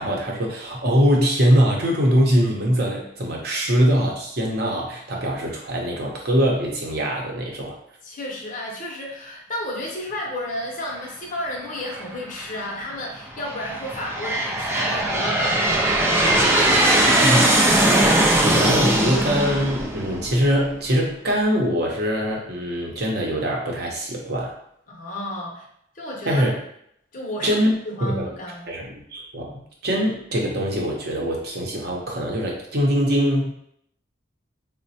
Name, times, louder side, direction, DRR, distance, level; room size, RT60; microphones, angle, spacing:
voice 1, 0.0-7.8 17.2-17.4 18.4-24.5 26.3-26.6 27.4-27.7 28.0-28.3 28.7-33.5, equal, 55° right, -1 dB, 0.7 m, -22 dB
voice 2, 8.0-18.0 24.9-25.7 25.9-26.4 27.1-27.6 27.9-28.7, left 1 dB, 45° left, -1 dB, 0.7 m, -32 dB
Aircraft, 11.9-12.5 13.2-20.7, right 1 dB, 15° right, 0.4 m, -20 dB
4.0 x 2.1 x 2.7 m, 0.71 s
head